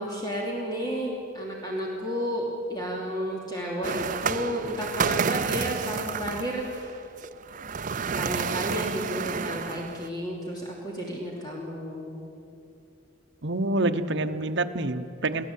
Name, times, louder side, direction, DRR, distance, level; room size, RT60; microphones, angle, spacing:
voice 1, 0.0-7.0 8.2-12.2, equal, 20° left, -2 dB, 2.9 m, -32 dB
sound 1, 3.8-10.1, right 5 dB, 40° right, 0.6 m, -30 dB
voice 2, 13.4-15.4, right 2 dB, 60° right, 8 dB, 1.0 m, -27 dB
24.0 x 16.0 x 8.5 m, 2.6 s
head